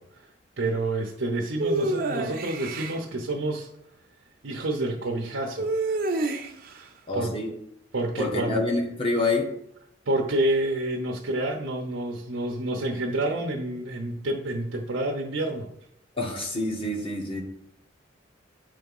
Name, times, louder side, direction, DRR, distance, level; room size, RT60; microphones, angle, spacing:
voice 1, 0.6-3.7 4.4-5.7 6.7-7.4 7.9-8.6 10.1-15.7, right 1 dB, 85° right, -1 dB, 0.8 m, -28 dB
sound 1, 1.6-3.0 5.6-6.7, right 2 dB, 50° right, 0.9 m, -27 dB
voice 2, 7.1-7.5 8.2-9.5 16.2-17.4, left 2 dB, 30° left, 1 dB, 1.4 m, -27 dB
9.0 x 3.6 x 5.5 m, 0.76 s
head